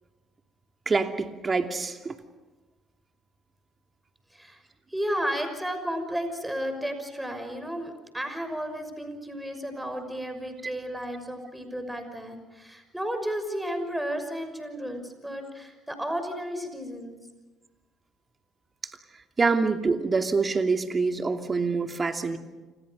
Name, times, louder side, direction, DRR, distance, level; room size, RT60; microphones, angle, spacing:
voice 1, 0.9-2.1 19.4-22.4, right 4 dB, 30° right, 5 dB, 2.7 m, -25 dB
voice 2, 4.9-17.2, equal, 5° right, 6 dB, 6.0 m, -33 dB
29.5 x 27.0 x 5.5 m, 1.2 s
hypercardioid pair, 65°, 0 cm